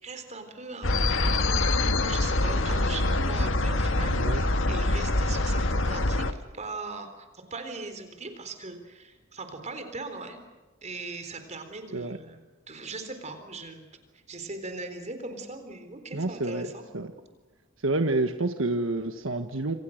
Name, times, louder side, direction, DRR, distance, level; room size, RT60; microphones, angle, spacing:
voice 1, 0.0-10.4 10.8-12.4 12.7-13.9 14.1-16.8, right 3 dB, 35° right, 7 dB, 4.0 m, -39 dB
sound 1, 0.8-6.3, left 2 dB, 65° left, 1.7 m, -25 dB
voice 2, 4.0-4.4 11.9-12.2 16.1-16.7 16.9-17.1 17.8-19.7, right 2 dB, 70° right, 7 dB, 1.5 m, -28 dB
28.0 x 26.5 x 6.6 m, 1.2 s
head